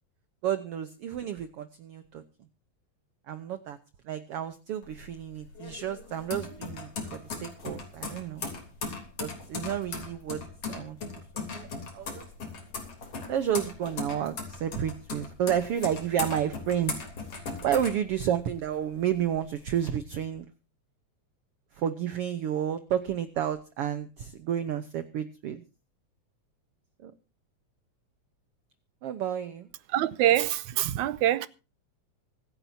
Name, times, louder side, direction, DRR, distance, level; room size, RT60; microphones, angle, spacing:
voice 1, 0.4-2.2 3.3-3.8 4.1-8.4 9.2-10.4 10.7-11.0 11.3-11.7 11.9-12.3 13.3-16.9 17.6-20.4 21.8-25.6 27.0-27.1 29.0-29.7, right 10 dB, 65° right, 1.7 m, -31 dB
sound 1, 4.8-18.7 19.0-19.9, left 4 dB, 50° left, 4.2 m, -38 dB
voice 2, 29.9-31.5, right 13 dB, 80° right, 2.2 m, -25 dB
25.5 x 10.5 x 2.7 m
omnidirectional pair, 3.4 m